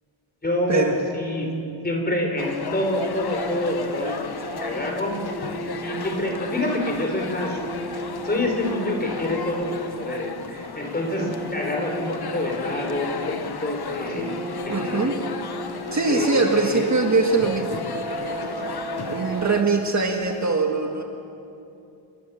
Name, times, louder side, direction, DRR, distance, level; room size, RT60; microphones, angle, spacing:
voice 1, 0.4-1.5 1.8-4.2 4.6-5.2 5.8-7.6 8.2-14.4 14.7-15.1 16.1-16.9 18.3-18.6, left 1 dB, 20° left, 2 dB, 4.4 m, -27 dB
sound 1, 2.4-19.6, left 6 dB, 50° left, 1.4 m, -34 dB
sound 2, 3.0-20.4, right 2 dB, 10° right, 1.2 m, -36 dB
voice 2, 14.7-15.2 15.9-17.8 19.1-21.0, right 3 dB, 35° right, 2 dB, 1.7 m, -22 dB
28.5 x 22.5 x 7.2 m, 2.7 s
wide cardioid pair, 170°, 50 cm